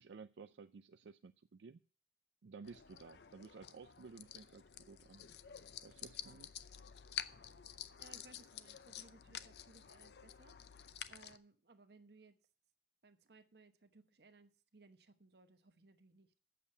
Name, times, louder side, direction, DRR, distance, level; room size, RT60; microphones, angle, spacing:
voice 1, 0.0-1.8 2.4-5.3 5.8-6.5, right 4 dB, 85° right, 0.4 m, -55 dB
sound 1, 2.6-11.4, left 10 dB, 65° left, 0.6 m, -50 dB
voice 2, 8.0-10.6 11.1-12.4 13.0-16.3, right 3 dB, 65° right, 1.0 m, -63 dB
8.5 x 7.2 x 8.6 m
head